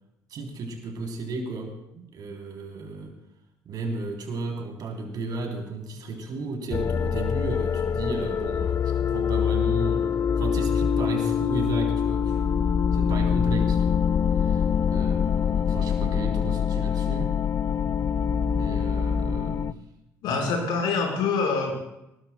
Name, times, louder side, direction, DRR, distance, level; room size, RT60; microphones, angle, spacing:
voice 1, 0.3-3.1 3.7-14.0 14.4-17.4 18.3-19.7, right 3 dB, 55° right, 2 dB, 3.4 m, -34 dB
sound 1, 6.7-19.7, left 7 dB, 40° left, 0.6 m, -24 dB
voice 2, 20.2-21.7, left 4 dB, 65° left, 1 dB, 4.7 m, -25 dB
22.5 x 20.0 x 2.3 m, 0.86 s
hypercardioid pair, 55°, 8 cm